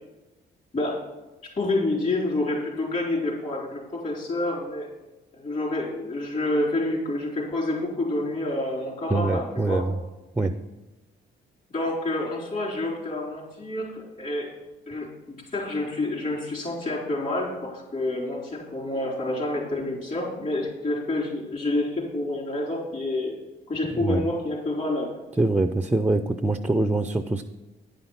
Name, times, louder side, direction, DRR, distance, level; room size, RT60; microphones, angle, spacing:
voice 1, 1.6-4.9 5.3-9.8 11.7-14.5 14.9-23.3 23.7-25.1, left 2 dB, 40° left, -4 dB, 3.9 m, -28 dB
voice 2, 9.1-10.0 10.4-10.5 24.0-24.3 25.4-27.4, right 2 dB, 10° right, 9 dB, 0.4 m, -24 dB
10.0 x 5.7 x 5.6 m, 1.1 s
cardioid pair, 90°, 20 cm